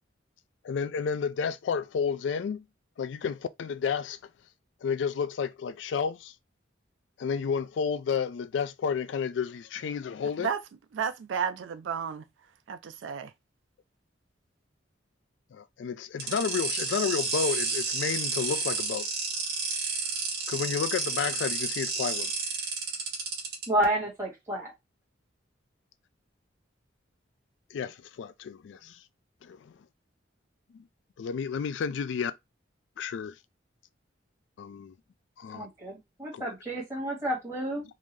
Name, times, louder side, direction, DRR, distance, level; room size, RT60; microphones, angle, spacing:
voice 1, 0.6-2.6 3.0-4.2 4.8-6.3 7.2-10.5 15.5-19.1 20.5-22.3 27.7-29.0 29.4-29.7 30.7-30.8 31.2-32.3 33.0-33.3 34.6-34.9 35.4-35.7 36.3-36.5, left 6 dB, 70° left, 0.3 m, -31 dB
voice 2, 10.9-12.2 12.7-13.3, right 7 dB, 75° right, 0.4 m, -32 dB
sound 1, 16.2-23.6, right 4 dB, 55° right, 1.7 m, -31 dB
voice 3, 23.7-24.7 35.5-37.8, right 1 dB, 15° right, 1.9 m, -30 dB
3.7 x 2.6 x 3.1 m
head